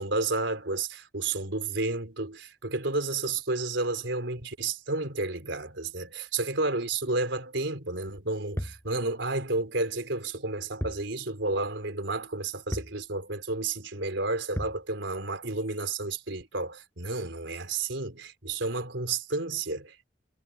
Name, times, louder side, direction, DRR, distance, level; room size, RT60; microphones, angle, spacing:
voice 1, 0.0-20.1, right 3 dB, 85° right, 3.8 m, -31 dB
sound 1, 8.6-8.9 10.8-11.1 11.4-11.5 12.7-13.0 14.6-14.8, equal, 15° left, 5.3 m, -34 dB
head